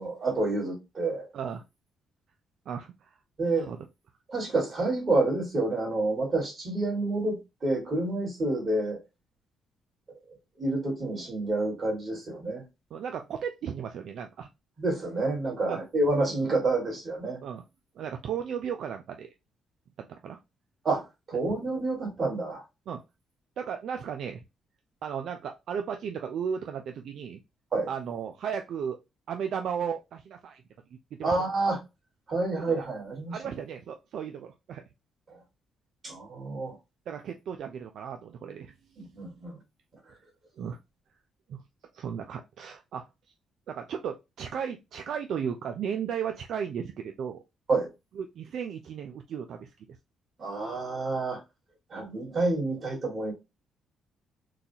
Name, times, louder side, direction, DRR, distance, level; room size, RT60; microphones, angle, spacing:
voice 1, 0.0-1.3 3.4-3.7 4.3-9.0 10.6-12.6 14.8-17.4 20.8-22.6 27.7-27.9 31.2-31.8 32.3-33.4 35.3-35.4 36.0-36.8 39.0-39.6 47.7-47.9 50.4-51.4 51.9-53.3, right 2 dB, 40° right, 2.0 m, -28 dB
voice 2, 2.7-3.2 3.7-3.8 12.9-14.5 15.7-15.8 17.4-17.6 18.0-19.3 20.1-20.4 22.9-23.0 23.6-24.4 25.0-27.4 27.9-29.0 29.3-30.6 31.1-31.3 32.8-32.9 33.3-34.8 37.1-38.7 40.6-40.8 41.5-41.6 41.9-43.1 43.7-47.4 48.2-49.7, right 7 dB, 70° right, 0.4 m, -35 dB
3.9 x 2.4 x 2.8 m
cardioid pair, 90°, 0 cm